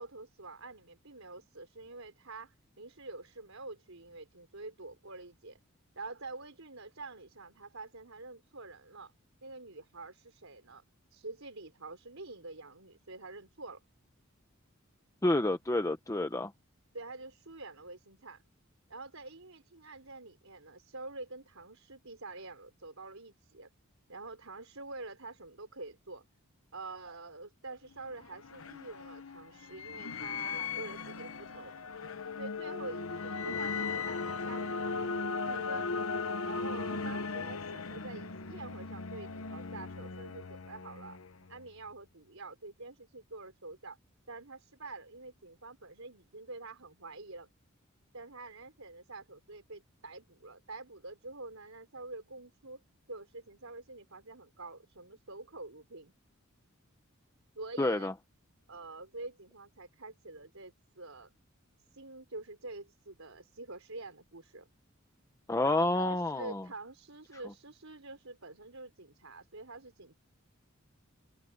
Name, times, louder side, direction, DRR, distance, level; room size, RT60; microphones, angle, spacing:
voice 1, 0.0-5.6 6.0-9.1 9.4-10.8 11.1-13.8 16.9-18.4 18.9-23.7 24.1-26.2 26.7-31.7 32.4-35.9 36.5-41.2 41.5-44.0 44.3-47.5 48.1-52.8 53.1-56.1 57.6-58.1 58.7-61.3 61.9-64.7 65.6-70.1, right 3 dB, 80° right, 4.3 m, -46 dB
voice 2, 15.2-16.5 57.8-58.1 65.5-66.6, left 2 dB, 15° left, 0.8 m, -29 dB
sound 1, 27.9-41.7, left 4 dB, 80° left, 1.0 m, -38 dB
head